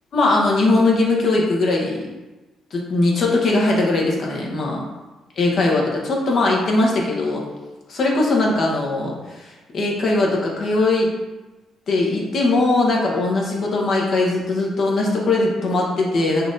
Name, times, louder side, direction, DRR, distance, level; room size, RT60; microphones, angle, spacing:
voice 1, 0.1-2.1 2.7-4.8 5.4-7.4 7.9-11.1 11.9-16.5, left 2 dB, 55° left, -2 dB, 1.0 m, -20 dB
4.3 x 2.6 x 3.8 m, 1.1 s
cardioid pair, 90°, 0 cm